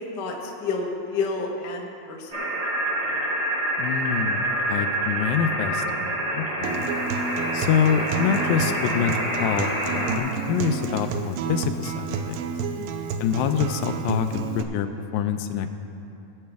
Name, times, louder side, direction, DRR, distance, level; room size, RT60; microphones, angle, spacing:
voice 1, 0.2-2.6 12.7-13.2, left 4 dB, 70° left, -1 dB, 1.0 m, -31 dB
sound 1, 2.3-10.2, right 1 dB, 20° right, 1.0 m, -27 dB
voice 2, 3.8-6.9 7.5-12.4 13.2-15.7, left 7 dB, 85° left, 8 dB, 2.4 m, -26 dB
Acoustic guitar, 6.6-14.6, right 6 dB, 85° right, 2.4 m, -30 dB
20.5 x 8.6 x 3.5 m, 2.7 s
omnidirectional pair, 4.1 m